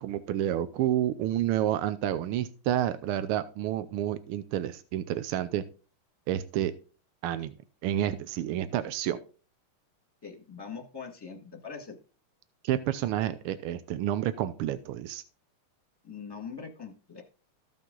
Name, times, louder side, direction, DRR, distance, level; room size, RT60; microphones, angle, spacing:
voice 1, 0.0-5.6 6.3-6.7 7.2-7.5 7.8-9.2 12.6-15.2, right 12 dB, 90° right, 13 dB, 1.5 m, -29 dB
voice 2, 10.2-11.9 16.0-17.2, left 5 dB, 10° left, 3 dB, 1.4 m, -42 dB
14.0 x 5.5 x 3.8 m, 0.37 s
omnidirectional pair, 2.4 m